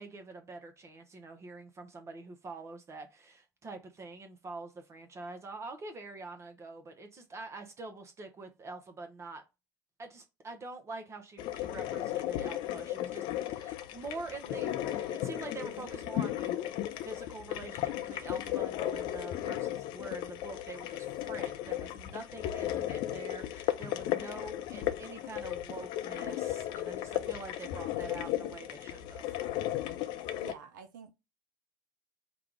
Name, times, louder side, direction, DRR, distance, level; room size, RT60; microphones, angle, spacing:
voice 1, 0.0-9.4 10.0-16.6 17.0-29.3, right 3 dB, 25° right, 0.9 m, -45 dB
sound 1, 11.4-30.5, left 13 dB, 45° left, 0.5 m, -35 dB
voice 2, 30.3-31.1, right 6 dB, 65° right, 0.6 m, -48 dB
4.9 x 2.3 x 4.6 m
figure-of-eight pair, 70°, 11 cm